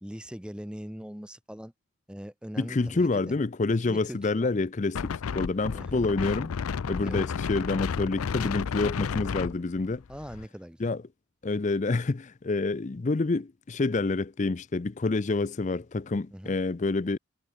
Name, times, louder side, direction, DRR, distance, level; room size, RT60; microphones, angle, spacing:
voice 1, 0.0-1.7 2.1-3.4 3.8-4.5 5.7-6.1 7.0-7.2 9.0-9.2 10.1-10.9 16.3-16.6, equal, 5° right, 1.1 m, -41 dB
voice 2, 2.6-6.5 6.8-10.0 10.8-11.0 11.4-17.2, left 3 dB, 35° left, 0.5 m, -28 dB
Wind, 4.9-10.4, left 6 dB, 85° left, 0.5 m, -32 dB
head